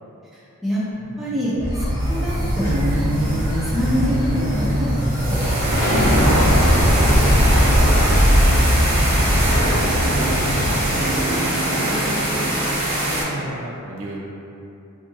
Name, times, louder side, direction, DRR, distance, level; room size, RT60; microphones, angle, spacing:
voice 1, 0.3-0.8 1.2-7.3 10.0-10.8, equal, ahead, -9 dB, 0.4 m, -26 dB
sound 1, 1.0-11.2, equal, 75° left, 1.1 m, -20 dB
sound 2, 1.6-7.9, equal, 15° left, 0.8 m, -25 dB
sound 3, 2.0-13.2, right 1 dB, 25° right, 0.7 m, -24 dB
voice 2, 8.2-8.6 9.9-10.0 10.4-11.4 11.7-12.2 13.0-14.2, right 1 dB, 60° right, -4 dB, 0.5 m, -35 dB
2.7 x 2.6 x 2.6 m, 2.7 s
head